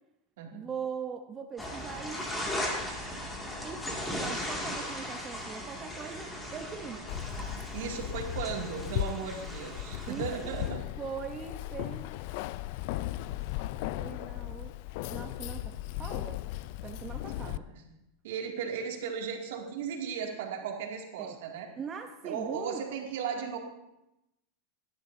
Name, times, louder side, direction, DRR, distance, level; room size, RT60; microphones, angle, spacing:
voice 1, 0.5-2.5 3.6-7.0 10.1-10.6 11.0-12.2 13.9-14.7 15.1-15.7 16.0-16.4 16.8-17.7 21.2-21.4 21.8-22.8, right 6 dB, 25° right, 4 dB, 0.8 m, -41 dB
sound 1, 1.6-10.7, left 1 dB, 10° left, 2.2 m, -38 dB
Keys jangling, 7.1-17.6, left 16 dB, 60° left, 0.3 m, -37 dB
voice 2, 7.6-10.8 17.4-17.8 18.2-21.7 22.2-23.6, right 6 dB, 75° right, 1 dB, 2.2 m, -36 dB
18.0 x 11.0 x 2.7 m, 0.89 s
supercardioid pair, 135°, 0 cm